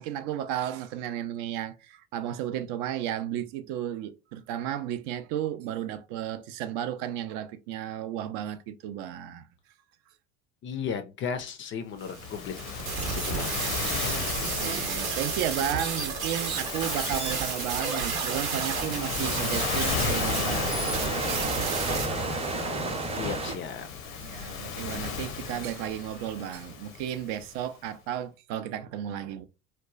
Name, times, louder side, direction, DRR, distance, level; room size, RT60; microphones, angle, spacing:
voice 1, 0.0-9.5 14.6-21.7 24.2-29.4, right 10 dB, 55° right, 0.5 m, -33 dB
voice 2, 10.6-12.5 13.1-13.9 23.2-23.9, left 7 dB, 30° left, 0.4 m, -35 dB
sound 1, 12.0-22.1, right 5 dB, 85° right, 0.8 m, -32 dB
Waves surf, 12.1-27.6, left 5 dB, 80° left, 0.6 m, -35 dB
sound 2, 16.4-23.6, right 2 dB, 15° right, 0.7 m, -33 dB
2.9 x 2.1 x 2.4 m
hypercardioid pair, 65°, 40 cm